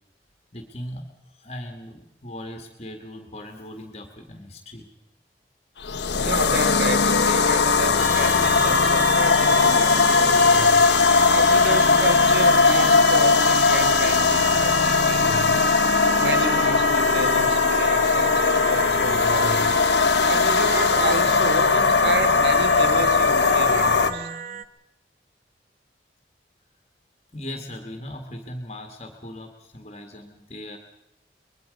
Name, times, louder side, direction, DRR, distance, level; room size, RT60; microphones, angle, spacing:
voice 1, 0.5-4.9 27.3-30.8, left 1 dB, 35° left, 1.8 m, -38 dB
sound 1, 5.8-24.1, left 4 dB, 80° left, 1.1 m, -19 dB
voice 2, 6.1-10.8 11.3-15.6 16.2-19.7 20.2-24.3, right 2 dB, 70° right, 1.6 m, -31 dB
sound 2, 8.0-24.7, right 7 dB, 45° right, 0.8 m, -33 dB
24.5 x 21.5 x 5.3 m
head